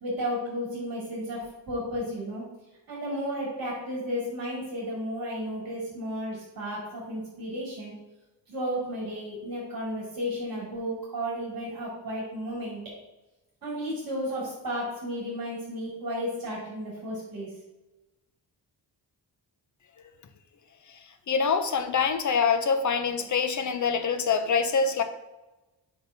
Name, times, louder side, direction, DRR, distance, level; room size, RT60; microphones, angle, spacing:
voice 1, 0.0-2.4 2.9-7.9 8.5-12.8 13.6-17.5, equal, 50° right, -6 dB, 2.4 m, -33 dB
voice 2, 21.3-25.0, left 5 dB, 40° left, 8 dB, 0.6 m, -25 dB
7.9 x 5.4 x 2.8 m, 1.0 s
wide cardioid pair, 155°, 44 cm